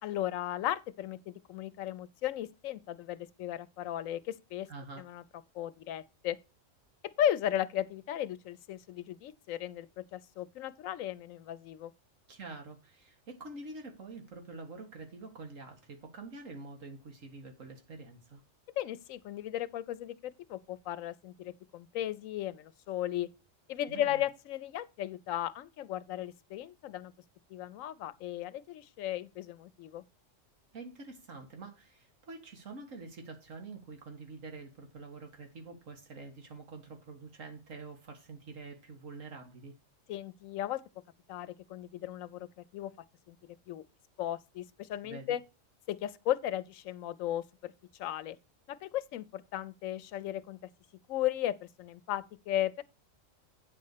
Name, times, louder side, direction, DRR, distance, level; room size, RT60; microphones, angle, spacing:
voice 1, 0.0-4.7 5.0-5.2 5.5-6.4 7.2-11.9 18.8-23.3 23.7-27.1 27.5-30.0 40.1-40.8 41.3-42.5 42.7-42.9 43.3-43.4 43.7-43.8 44.2-45.4 45.9-47.7 48.0-48.4 48.7-50.6 51.1-52.8, left 12 dB, 85° left, 1.0 m, -35 dB
voice 2, 4.7-5.0 12.3-18.4 23.9-24.2 30.7-39.8 45.0-45.4, right 3 dB, 80° right, 2.1 m, -46 dB
8.7 x 4.2 x 6.6 m
omnidirectional pair, 1.3 m